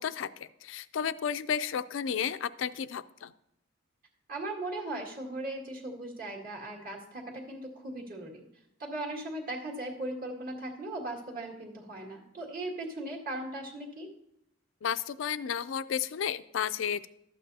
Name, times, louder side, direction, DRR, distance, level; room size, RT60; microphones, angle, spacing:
voice 1, 0.0-3.3 14.8-17.1, left 8 dB, 85° left, 14 dB, 0.4 m, -32 dB
voice 2, 4.3-8.4 8.8-14.1, right 2 dB, 50° right, -1 dB, 2.0 m, -38 dB
12.5 x 8.4 x 2.7 m, 0.79 s
head